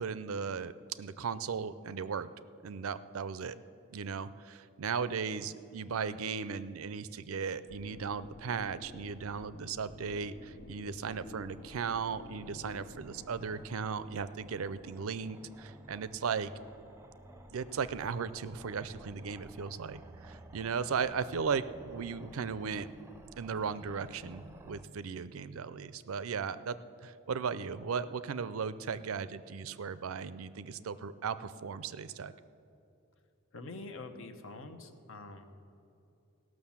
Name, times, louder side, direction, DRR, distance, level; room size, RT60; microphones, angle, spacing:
voice 1, 0.0-2.3 2.6-3.6 3.9-16.5 17.5-22.9 23.4-26.8 27.0-32.3, right 6 dB, 70° right, 15 dB, 0.5 m, -36 dB
sound 1, 7.7-13.7, left 3 dB, 50° left, 0.4 m, -52 dB
sound 2, 11.5-24.8, right 1 dB, 10° right, 0.5 m, -54 dB
voice 2, 33.5-35.6, left 3 dB, 65° left, 6 dB, 0.9 m, -46 dB
16.5 x 6.3 x 7.2 m, 2.7 s
head